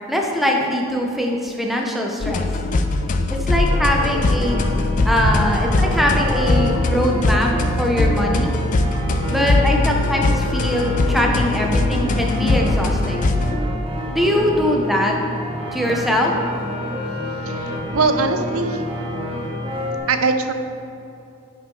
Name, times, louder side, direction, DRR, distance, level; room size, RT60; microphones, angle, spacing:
voice 1, 0.1-2.4 3.3-4.7 5.0-7.5 7.8-8.5 9.3-13.3 14.1-15.2 15.7-16.3, equal, ahead, 0 dB, 0.7 m, -22 dB
sound 1, 2.2-13.6, left 2 dB, 35° left, 0.4 m, -21 dB
sound 2, 3.7-20.0, left 1 dB, 25° right, 1.0 m, -28 dB
voice 2, 17.4-18.8 20.1-20.5, right 4 dB, 70° right, 8 dB, 0.6 m, -21 dB
9.9 x 6.0 x 3.9 m, 2.8 s
head